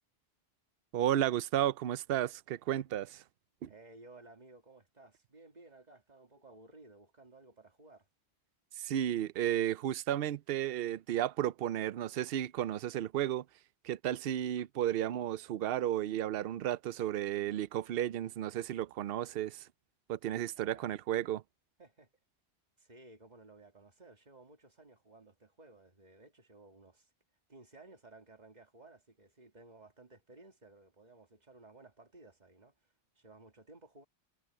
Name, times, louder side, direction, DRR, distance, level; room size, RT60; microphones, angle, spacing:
voice 1, 0.9-3.2 3.6-3.7 8.8-13.4 13.8-19.7 20.1-21.4, right 12 dB, 65° right, 0.8 m, -33 dB
voice 2, 3.7-8.1 20.5-20.9 21.8-22.1 22.8-27.1 27.5-34.0, right 2 dB, 40° right, 2.1 m, -57 dB
omnidirectional pair, 1.1 m